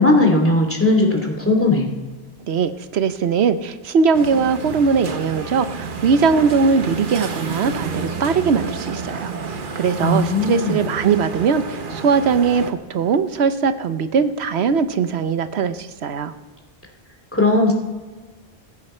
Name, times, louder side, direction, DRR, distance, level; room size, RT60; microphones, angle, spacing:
voice 1, 0.0-1.9 10.0-10.8 17.3-17.7, left 2 dB, 10° left, 1 dB, 2.4 m, -17 dB
voice 2, 2.5-9.3 9.7-16.3, right 5 dB, 85° right, 11 dB, 1.1 m, -20 dB
sound 1, 4.1-12.7, right 4 dB, 55° right, 1.1 m, -30 dB
15.5 x 14.5 x 4.4 m, 1.3 s
omnidirectional pair, 1.1 m